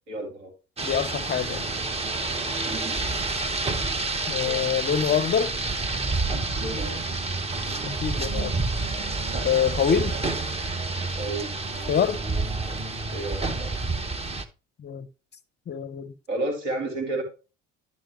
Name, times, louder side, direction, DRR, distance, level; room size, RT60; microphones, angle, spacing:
voice 1, 0.1-0.5 2.6-3.0 6.6-7.2 11.2-11.5 13.1-13.7 16.3-17.2, right 2 dB, 70° right, 2.5 m, -32 dB
voice 2, 0.8-1.6 4.3-5.5 7.9-8.5 9.4-10.2 11.9-12.2 14.8-15.1 15.7-16.1, left 8 dB, 30° left, 0.6 m, -25 dB
Rain, 0.8-14.4, right 3 dB, 15° right, 0.8 m, -29 dB
11.5 x 5.3 x 3.0 m
figure-of-eight pair, 55°, 37 cm